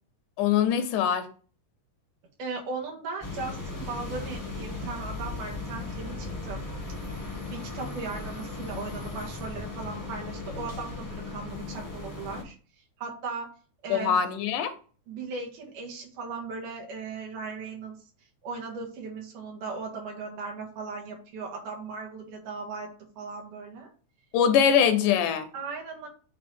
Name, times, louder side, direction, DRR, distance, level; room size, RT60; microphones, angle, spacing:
voice 1, 0.4-1.3 13.9-14.7 24.3-25.5, left 8 dB, 85° left, 2.4 m, -23 dB
voice 2, 2.4-6.6 7.5-12.6 13.0-13.5 13.8-14.2 15.1-18.0 18.4-22.9 23.2-23.9 25.5-26.1, right 4 dB, 85° right, 3.3 m, -37 dB
sound 1, 3.2-12.4, left 3 dB, 15° left, 0.6 m, -37 dB
8.4 x 3.5 x 4.4 m
omnidirectional pair, 3.5 m